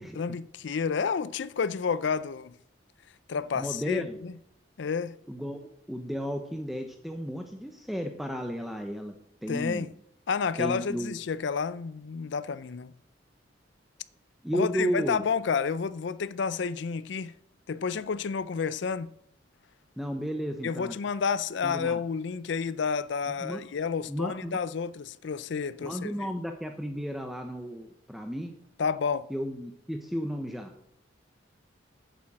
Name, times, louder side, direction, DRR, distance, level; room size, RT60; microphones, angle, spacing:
voice 1, 0.1-2.6 3.3-4.3 4.8-5.2 9.5-9.9 10.3-12.9 14.5-17.3 17.7-19.1 20.6-26.3 28.8-29.3, left 5 dB, 65° left, 0.4 m, -30 dB
voice 2, 3.6-4.2 5.3-5.6 5.9-9.1 9.4-9.9 10.6-11.2 14.4-15.2 20.0-20.9 21.6-22.0 23.4-23.6 24.1-24.5 25.8-28.5 29.3-30.7, equal, ahead, 0.7 m, -33 dB
8.8 x 7.3 x 7.7 m
head